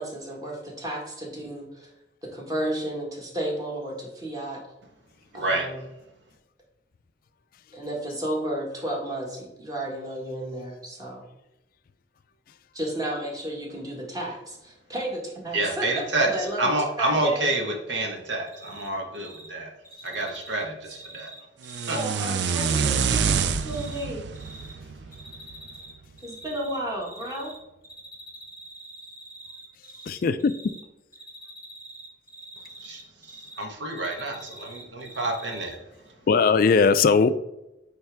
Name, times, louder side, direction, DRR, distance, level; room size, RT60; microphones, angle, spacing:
voice 1, 0.0-1.9 2.3-4.6 5.3-5.8 7.7-11.2 12.7-16.7 17.0-17.5 21.8-24.2 26.2-27.5, right 1 dB, 20° right, -2 dB, 1.5 m, -33 dB
voice 2, 5.3-5.7 15.5-16.3 16.6-19.7 20.0-21.3 21.9-22.3 32.8-35.8, right 2 dB, 90° right, 2 dB, 1.3 m, -28 dB
Cricket, 18.5-18.9 19.1-19.5 19.8-22.0 22.3-24.0 24.3-24.7 25.1-25.9 26.2-27.6 27.8-30.1 30.4-30.8 31.1-33.6 33.9-35.7, right 1 dB, 20° left, 0.9 m, -44 dB
sound 1, 21.6-25.8, right 6 dB, 70° right, 0.4 m, -27 dB
voice 3, 30.1-30.5 36.3-37.3, left 5 dB, 50° left, 13 dB, 0.3 m, -19 dB
8.9 x 3.4 x 3.4 m, 0.94 s
head